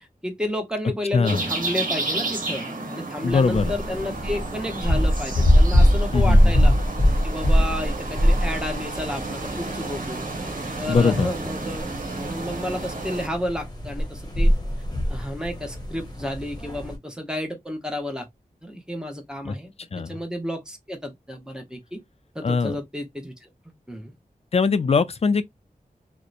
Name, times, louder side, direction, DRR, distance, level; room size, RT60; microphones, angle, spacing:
voice 1, 0.0-6.7 7.2-10.2 10.8-11.9 12.2-14.5 15.1-18.3 18.6-19.7 20.1-22.0 22.3-23.5 23.9-24.1, left 1 dB, 5° right, 0.8 m, -31 dB
voice 2, 1.1-1.4 3.2-3.7 6.1-6.8 8.4-8.5 10.9-11.3 19.4-19.5 19.9-20.2 22.4-22.8 24.5-25.4, left 4 dB, 45° left, 0.4 m, -21 dB
sound 1, 1.2-13.3, right 3 dB, 60° right, 1.0 m, -32 dB
sound 2, 3.3-17.0, equal, 25° left, 0.9 m, -23 dB
2.7 x 2.1 x 2.4 m
wide cardioid pair, 75°, 15 cm